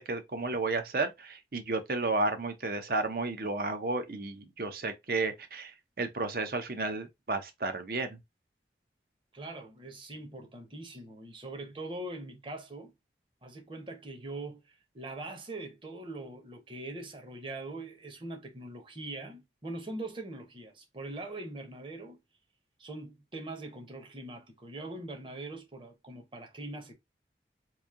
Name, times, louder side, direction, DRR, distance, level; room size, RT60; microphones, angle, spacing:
voice 1, 0.0-8.2, right 3 dB, 55° right, 0.7 m, -32 dB
voice 2, 9.3-12.9 13.4-22.2 22.8-26.9, right 2 dB, 30° right, 0.9 m, -42 dB
3.1 x 2.7 x 3.7 m
head